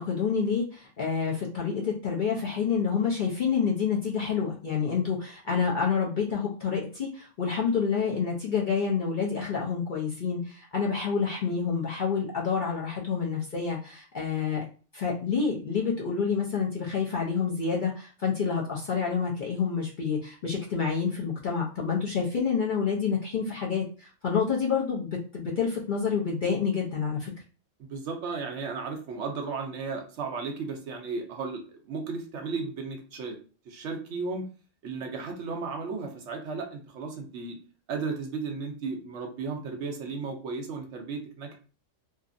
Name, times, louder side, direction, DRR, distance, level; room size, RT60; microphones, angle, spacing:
voice 1, 0.0-14.7 14.9-27.3, left 6 dB, 55° left, -3 dB, 0.6 m, -28 dB
voice 2, 27.8-31.6 31.9-33.4 33.7-34.5 34.8-37.6 37.9-41.6, right 4 dB, 70° right, 4 dB, 0.9 m, -34 dB
2.8 x 2.4 x 2.5 m, 0.37 s
omnidirectional pair, 1.3 m